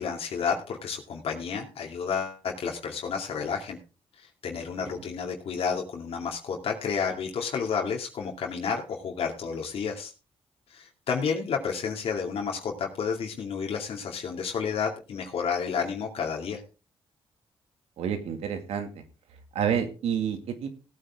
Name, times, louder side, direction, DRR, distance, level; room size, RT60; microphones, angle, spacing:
voice 1, 0.0-3.8 4.2-10.1 10.7-16.6, left 6 dB, 70° left, 0 dB, 2.5 m, -31 dB
voice 2, 18.0-18.9 19.5-20.7, right 8 dB, 90° right, 7 dB, 2.2 m, -29 dB
17.5 x 9.0 x 3.6 m, 0.33 s
cardioid pair, 80°, 10 cm